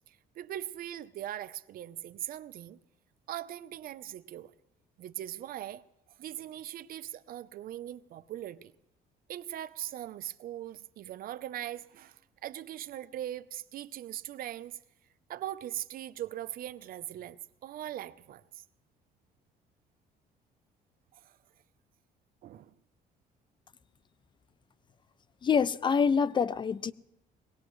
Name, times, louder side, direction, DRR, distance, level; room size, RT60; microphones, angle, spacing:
voice 1, 0.1-2.8 3.3-4.5 5.0-5.8 6.2-8.7 9.3-14.8 15.3-18.6 21.1-21.4 22.4-22.7, right 12 dB, 60° right, 0.6 m, -40 dB
voice 2, 25.4-26.9, left 6 dB, 30° left, 0.4 m, -26 dB
21.5 x 17.5 x 3.1 m
cardioid pair, 110°, 17 cm